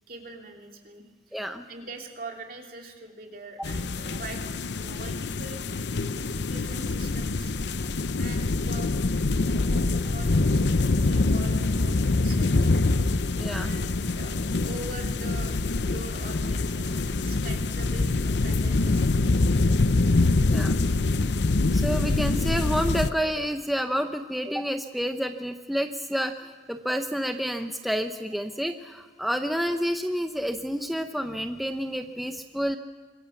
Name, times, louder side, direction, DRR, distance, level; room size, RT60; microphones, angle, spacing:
voice 1, 0.1-1.4 1.7-4.4 4.7-5.6 6.5-7.5 8.2-9.1 9.5-12.7 13.4-15.5 15.8-19.6, right 2 dB, 50° right, 2 dB, 2.9 m, -43 dB
voice 2, 1.3-1.6 13.3-13.7 20.5-20.8 21.7-32.8, equal, ahead, 6 dB, 0.8 m, -29 dB
sound 1, 3.6-23.1, left 3 dB, 70° left, 0.7 m, -25 dB
25.0 x 21.0 x 7.2 m, 1.4 s
head